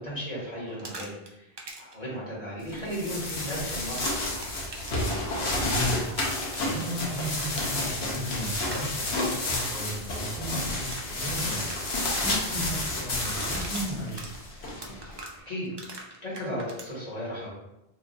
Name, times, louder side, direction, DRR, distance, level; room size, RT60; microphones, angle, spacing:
voice 1, 0.0-1.5 1.8-4.1 15.5-15.7 16.2-17.5, equal, 40° left, -8 dB, 1.5 m, -35 dB
sound 1, 0.7-1.3 1.6-1.9 4.0-6.7 8.6-8.8 10.7-16.9, right 2 dB, 40° right, 0.4 m, -41 dB
sound 2, 2.7-15.2, left 2 dB, 85° left, 1.1 m, -31 dB
voice 2, 5.6-6.2 6.6-11.7 12.2-14.2, equal, 5° right, -8 dB, 1.2 m, -35 dB
3.1 x 2.5 x 3.9 m, 0.89 s
omnidirectional pair, 1.0 m